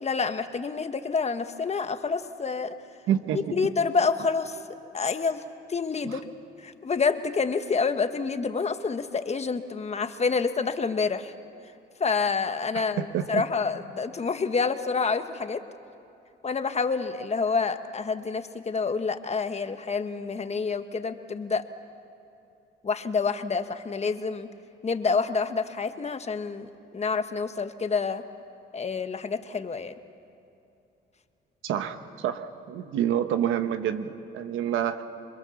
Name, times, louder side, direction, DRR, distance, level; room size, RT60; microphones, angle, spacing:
voice 1, 0.0-2.7 3.5-4.6 4.9-5.4 5.7-6.2 6.6-11.3 12.0-15.6 16.4-21.6 22.8-24.5 24.8-28.2 28.7-29.9, left 5 dB, 35° left, 9 dB, 1.2 m, -28 dB
voice 2, 3.1-3.5 6.0-6.1 13.1-13.4 31.6-35.0, right 10 dB, 85° right, 9 dB, 1.2 m, -28 dB
27.0 x 22.0 x 7.1 m, 2.7 s
cardioid pair, 90°, 20 cm